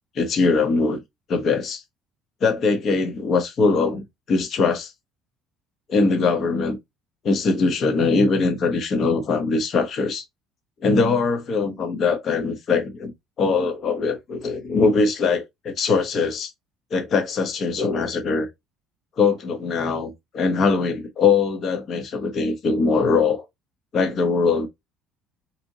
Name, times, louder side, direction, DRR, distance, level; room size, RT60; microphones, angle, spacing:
voice 1, 0.2-1.0 1.3-1.8 2.4-4.9 5.9-6.8 7.2-10.2 10.8-13.1 13.4-16.5 16.9-18.5 19.2-23.4 23.9-24.7, left 4 dB, 45° left, 0.8 m, -21 dB
4.1 x 2.7 x 2.7 m
cardioid pair, 120°, 0 cm